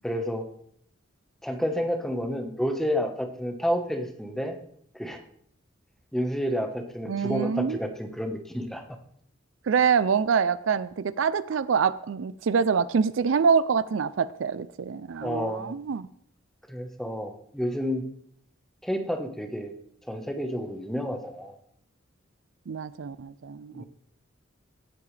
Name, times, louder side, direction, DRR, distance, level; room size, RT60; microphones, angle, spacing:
voice 1, 0.0-0.5 1.4-4.6 4.9-5.2 6.1-8.8 15.2-15.7 16.7-18.0 18.8-19.7 20.0-21.6 23.7-23.9, equal, ahead, 4 dB, 1.2 m, -30 dB
voice 2, 7.1-7.8 9.6-16.1 22.7-23.8, right 6 dB, 70° right, 16 dB, 0.4 m, -25 dB
17.5 x 8.4 x 3.3 m, 0.66 s
head